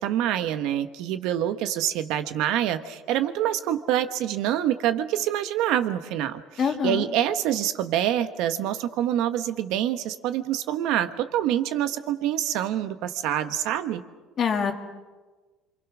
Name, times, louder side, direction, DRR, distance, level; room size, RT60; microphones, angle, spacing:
voice 1, 0.0-14.0, right 11 dB, 70° right, 10 dB, 1.3 m, -26 dB
voice 2, 6.6-7.0 14.4-14.7, left 6 dB, 35° left, 5 dB, 2.1 m, -24 dB
27.0 x 24.5 x 6.3 m, 1.3 s
cardioid pair, 140°, 0 cm